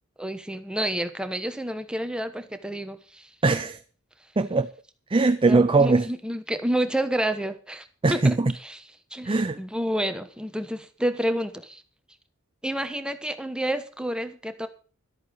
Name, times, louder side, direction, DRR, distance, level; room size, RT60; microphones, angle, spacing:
voice 1, 0.2-3.3 5.5-8.8 9.1-11.8 12.6-14.7, right 1 dB, 5° right, 1.1 m, -29 dB
voice 2, 3.4-3.8 4.4-4.7 5.1-6.1 8.0-8.5 9.3-9.6, right 3 dB, 25° right, 0.5 m, -20 dB
13.0 x 8.8 x 6.6 m
head